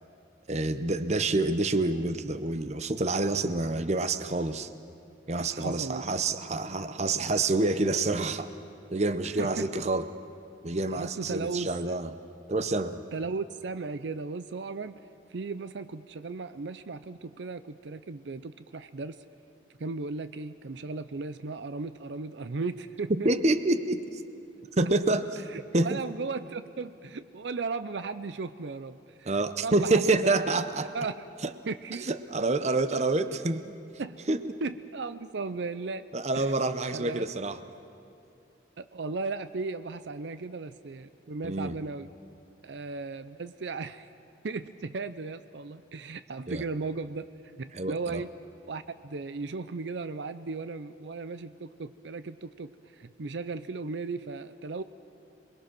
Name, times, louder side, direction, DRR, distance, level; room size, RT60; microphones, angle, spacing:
voice 1, 0.5-4.7 5.3-8.5 8.9-10.0 10.6-12.1 12.5-13.0 23.1-24.2 24.8-25.4 25.7-26.0 29.3-30.9 31.4-31.5 32.0-33.7 34.3-34.4 36.1-37.6 41.4-41.7 46.5-46.6 47.7-48.2, right 2 dB, 40° right, 11 dB, 0.8 m, -27 dB
voice 2, 5.5-6.0 9.4-9.6 10.9-12.0 13.1-15.0 15.3-19.2 19.8-23.3 25.5-29.3 29.6-30.4 30.9-31.3 31.7-32.1 34.0-34.1 34.6-36.0 36.3-36.5 36.9-37.3 38.8-42.1 42.6-44.1 44.4-47.2 47.6-48.3 48.7-54.8, right 4 dB, 75° right, 13 dB, 0.6 m, -36 dB
27.0 x 21.5 x 6.1 m, 2.5 s
head